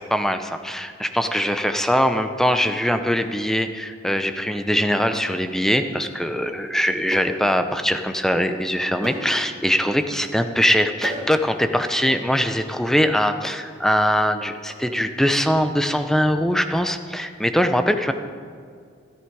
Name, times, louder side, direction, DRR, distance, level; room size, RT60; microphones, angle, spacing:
voice 1, 0.0-18.1, equal, ahead, 8 dB, 0.7 m, -22 dB
sound 1, 3.2-3.4 5.1-5.4 7.1-7.4 7.7-7.8 9.0-9.3 11.0-11.4, right 1 dB, 20° right, 2.1 m, -34 dB
14.0 x 12.5 x 4.8 m, 2.2 s
head